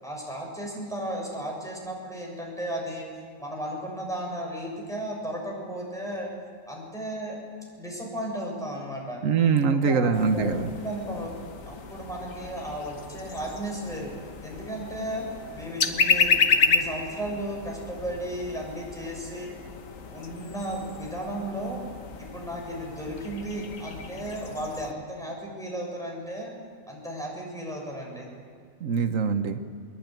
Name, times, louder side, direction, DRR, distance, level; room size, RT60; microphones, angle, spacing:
voice 1, 0.0-3.1 3.4-6.3 6.7-7.4 7.8-9.2 9.7-11.3 11.7-14.1 14.4-15.3 15.5-19.5 20.1-21.8 22.2-26.5 26.9-28.3, right 1 dB, ahead, -2 dB, 7.1 m, -34 dB
voice 2, 9.2-10.7 28.8-29.6, right 5 dB, 90° right, 8 dB, 1.5 m, -23 dB
sound 1, 10.1-24.9, left 5 dB, 85° left, 1.7 m, -31 dB
23.0 x 21.5 x 9.2 m, 2.1 s
omnidirectional pair, 1.3 m